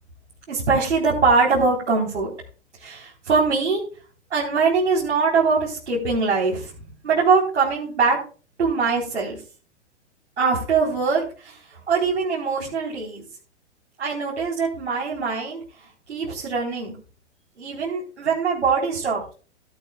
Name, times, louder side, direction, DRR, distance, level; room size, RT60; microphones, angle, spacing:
voice 1, 0.5-2.3 2.8-3.8 4.3-6.7 7.0-8.2 8.6-9.4 10.4-13.2 14.0-15.6 16.1-16.9 17.6-19.2, right 4 dB, 75° right, -4 dB, 4.1 m, -22 dB
17.0 x 11.0 x 2.4 m, 0.37 s
figure-of-eight pair, 110°, 35 cm